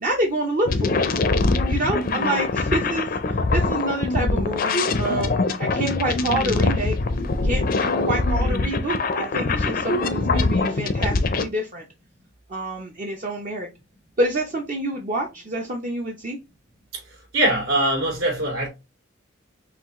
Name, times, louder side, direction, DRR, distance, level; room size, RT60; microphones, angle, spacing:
voice 1, 0.0-1.1 1.7-7.0 7.4-11.8 12.5-13.7 14.2-16.4, right 1 dB, 40° right, 0.6 m, -27 dB
sound 1, 0.7-11.4, left 3 dB, 45° left, 0.5 m, -23 dB
voice 2, 16.9-18.7, right 1 dB, 75° right, 3.0 m, -23 dB
5.8 x 2.4 x 3.0 m
head